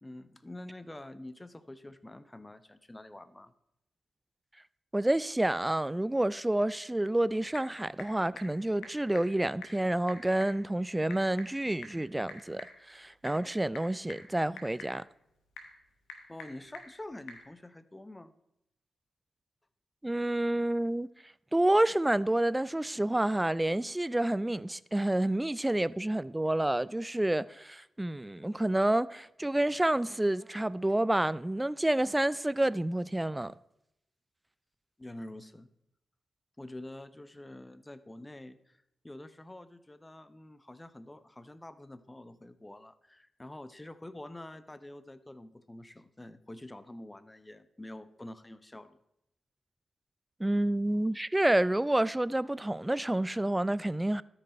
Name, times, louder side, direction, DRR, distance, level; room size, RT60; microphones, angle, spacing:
voice 1, 0.0-3.5 16.3-18.3 35.0-35.7 36.6-49.0, left 1 dB, 20° left, 0.7 m, -47 dB
voice 2, 4.9-15.0 20.0-21.1 21.5-33.5 50.4-54.2, right 1 dB, 15° right, 0.3 m, -29 dB
Typing / Telephone, 7.0-17.5, left 4 dB, 90° left, 1.1 m, -50 dB
13.0 x 5.5 x 4.2 m
supercardioid pair, 45°, 0 cm